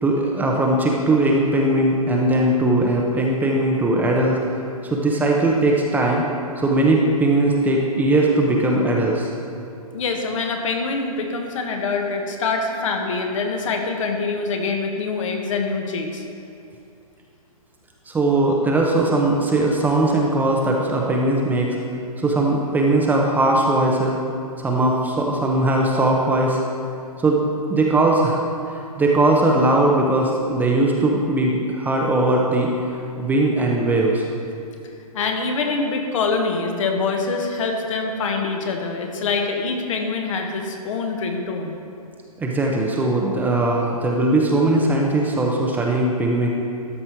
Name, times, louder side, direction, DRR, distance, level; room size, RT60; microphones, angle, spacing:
voice 1, 0.0-4.4 4.8-6.2 6.6-9.3 18.1-21.8 22.2-24.2 24.6-26.6 27.2-27.4 27.7-28.4 28.7-32.7 33.2-34.2 42.4-46.5, right 2 dB, 10° right, -1 dB, 0.7 m, -19 dB
voice 2, 9.9-16.2 35.1-41.8, left 4 dB, 55° left, 3 dB, 1.3 m, -25 dB
12.5 x 5.5 x 4.5 m, 2.6 s
hypercardioid pair, 130°, 19 cm